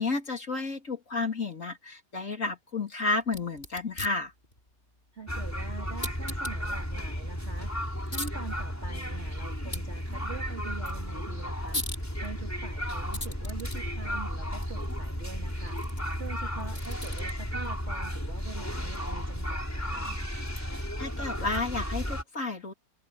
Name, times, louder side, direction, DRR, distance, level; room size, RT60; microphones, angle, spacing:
voice 1, 0.0-4.3 20.7-22.7, left 3 dB, 45° left, 3.6 m, -31 dB
sound 1, 3.2-21.9, left 2 dB, 30° left, 4.6 m, -44 dB
voice 2, 5.1-7.7 8.0-15.8 16.2-20.2, right 5 dB, 40° right, 2.8 m, -44 dB
sound 2, 5.3-22.2, equal, 10° left, 4.6 m, -34 dB
omnidirectional pair, 1.9 m